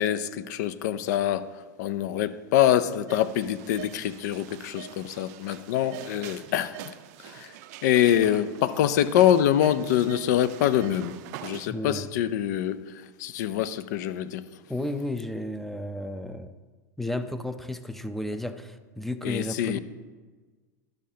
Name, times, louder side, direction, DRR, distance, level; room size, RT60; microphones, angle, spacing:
voice 1, 0.0-7.6 7.8-14.5 19.2-19.8, left 11 dB, 65° left, 0.5 m, -25 dB
sound 1, 3.1-11.7, right 12 dB, 60° right, 0.4 m, -44 dB
voice 2, 11.7-12.0 14.7-16.6 17.0-19.8, left 1 dB, ahead, 0.5 m, -33 dB
12.0 x 6.5 x 2.8 m
hypercardioid pair, 110°, 10 cm